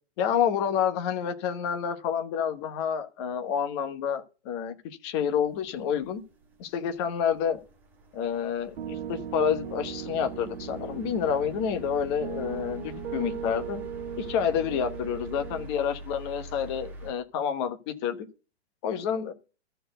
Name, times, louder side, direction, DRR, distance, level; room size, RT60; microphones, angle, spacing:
voice 1, 0.2-6.2 6.6-7.6 8.1-13.8 14.2-18.3 18.8-19.3, left 8 dB, 25° left, 1.1 m, -29 dB
sound 1, 5.2-17.1, right 1 dB, 5° right, 1.5 m, -46 dB
Piano, 8.8-15.7, right 8 dB, 75° right, 1.3 m, -38 dB
13.5 x 4.5 x 7.8 m
hypercardioid pair, 165°, 35 cm